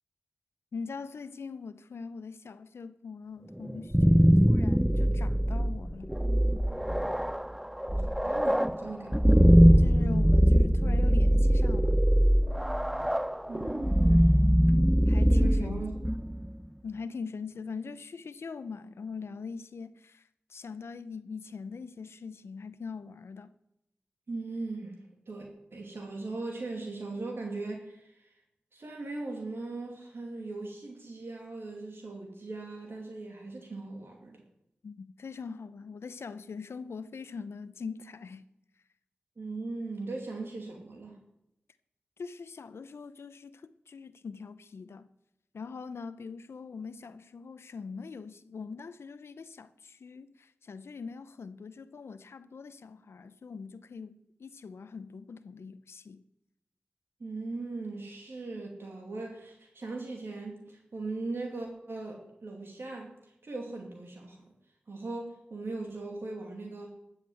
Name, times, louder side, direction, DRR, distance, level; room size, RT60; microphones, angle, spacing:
voice 1, 0.7-6.2 9.8-12.0 15.1-15.8 16.8-20.2 20.5-23.5 34.8-38.5 42.2-45.1 45.5-56.2, left 5 dB, 80° left, 0.6 m, -42 dB
sound 1, 3.7-16.5, equal, 5° right, 0.4 m, -22 dB
voice 2, 8.0-9.3 13.5-14.6 15.3-16.0 24.3-25.0 25.3-28.3 28.7-34.4 39.4-41.2 57.2-64.5 64.9-66.9, right 3 dB, 65° right, 2.5 m, -39 dB
12.5 x 7.4 x 7.9 m
cardioid pair, 40°, 4 cm